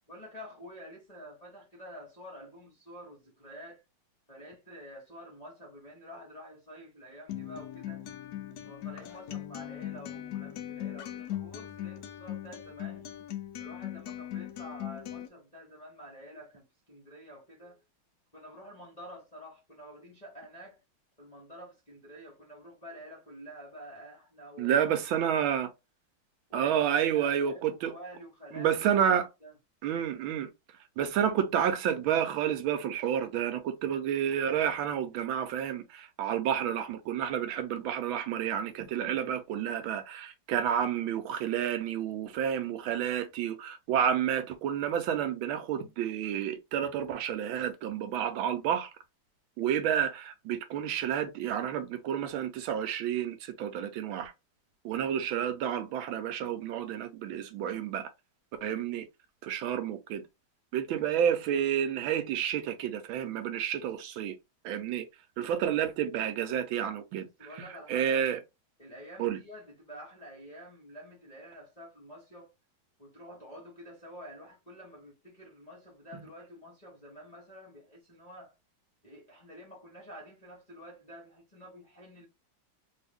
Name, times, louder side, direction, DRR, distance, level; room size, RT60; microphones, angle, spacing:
voice 1, 0.1-3.8 4.3-8.0 8.6-13.1 13.6-17.8 18.3-20.8 21.2-24.7 25.1-25.4 26.5-28.7 29.4-29.5 67.4-68.3 68.8-72.5 73.0-78.5 79.0-82.3, equal, 30° left, 0.7 m, -49 dB
Acoustic guitar, 7.3-15.3, left 12 dB, 80° left, 0.8 m, -39 dB
voice 2, 24.6-25.7 26.5-27.9 28.5-29.3 29.8-30.5 31.0-48.9 49.6-54.3 54.8-58.1 58.6-59.1 59.4-60.2 60.7-64.4 64.6-65.1 65.4-67.3 67.6-68.4 69.2-69.4 76.1-76.2, right 9 dB, 75° right, 1.4 m, -30 dB
3.1 x 2.7 x 3.4 m
omnidirectional pair, 2.3 m